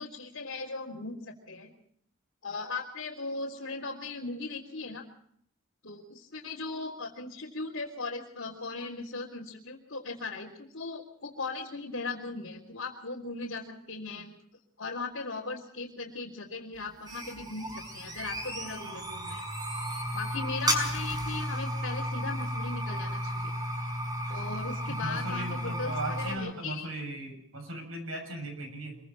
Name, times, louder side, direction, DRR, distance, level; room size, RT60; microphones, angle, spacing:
voice 1, 0.0-1.7 2.4-5.0 5.8-14.3 14.8-19.5 20.1-23.5 24.3-26.9, left 3 dB, 65° left, -5 dB, 3.6 m, -38 dB
sound 1, 16.8-26.4, equal, 20° right, 5.8 m, -33 dB
voice 2, 24.9-29.0, right 1 dB, 75° right, 6 dB, 7.0 m, -38 dB
26.0 x 23.5 x 4.3 m, 0.65 s
head